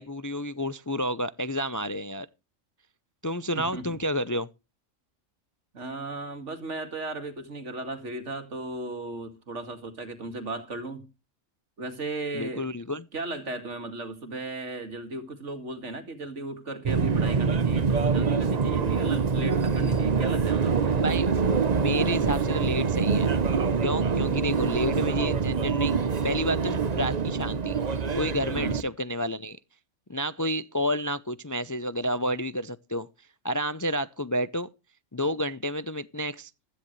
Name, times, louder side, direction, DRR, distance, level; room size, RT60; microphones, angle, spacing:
voice 1, 0.0-2.3 3.2-4.5 12.3-13.1 21.0-21.3 21.8-23.3 23.8-26.0 26.2-29.6 30.1-33.1 33.4-34.7 35.1-36.5, equal, 30° left, 0.3 m, -30 dB
voice 2, 3.5-4.0 5.7-11.1 11.8-12.7 13.1-21.0 28.5-28.8, right 2 dB, 60° right, 2.4 m, -36 dB
Subway metro underground, 16.8-28.8, right 5 dB, 35° right, 0.8 m, -25 dB
16.0 x 13.0 x 3.1 m
omnidirectional pair, 1.4 m